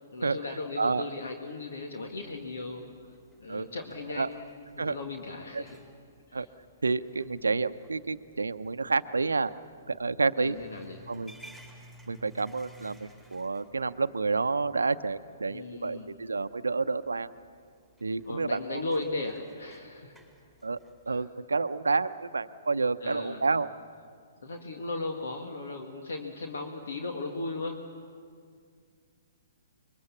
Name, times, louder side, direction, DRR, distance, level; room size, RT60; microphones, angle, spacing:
voice 1, 0.1-2.9 3.4-5.8 6.3-6.5 10.4-11.1 15.5-16.1 18.3-20.1 21.1-21.2 23.0-23.4 24.4-27.9, left 3 dB, 70° left, 2 dB, 2.0 m, -37 dB
sound 1, 2.0-21.3, equal, 10° left, 4.8 m, -57 dB
voice 2, 6.8-9.5 9.9-10.6 11.1-11.3 12.1-17.3 18.0-19.0 20.6-20.8 21.1-23.7, right 4 dB, 85° right, 11 dB, 0.7 m, -29 dB
25.5 x 23.0 x 7.3 m, 2.1 s
hypercardioid pair, 125°, 0 cm